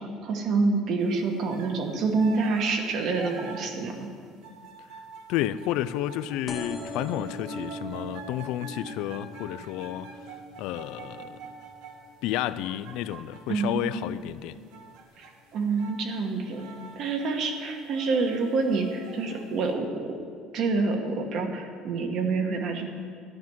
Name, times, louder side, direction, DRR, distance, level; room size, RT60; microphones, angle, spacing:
voice 1, 0.0-4.1 13.5-14.1 15.2-15.3 15.5-16.7 16.9-20.2 20.5-22.8, right 4 dB, 45° right, 1.3 m, -27 dB
sound 1, 1.5-1.8 2.2-13.9 14.7-15.3 15.7-16.1 16.5-19.6, right 5 dB, 80° right, 1.3 m, -46 dB
voice 2, 5.3-10.1 10.6-11.4 12.2-14.6, left 13 dB, 65° left, 0.4 m, -31 dB
sound 2, 6.5-13.7 14.2-14.6 15.5-15.6 15.8-15.9 16.1-16.2, equal, 15° left, 0.8 m, -42 dB
12.0 x 5.9 x 9.1 m
cardioid pair, 175°, 0 cm